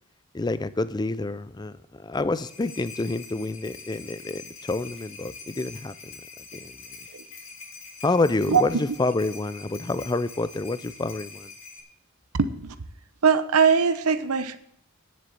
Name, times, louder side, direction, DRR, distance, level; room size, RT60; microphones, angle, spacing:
voice 1, 0.3-6.2 6.5-6.8 8.0-11.5, left 2 dB, 20° left, 15 dB, 0.4 m, -28 dB
sound 1, 2.1-11.8, left 4 dB, 70° left, 2.6 m, -44 dB
voice 2, 12.3-12.8 13.2-14.6, right 6 dB, 90° right, 11 dB, 0.9 m, -21 dB
10.0 x 7.5 x 7.7 m, 0.68 s
head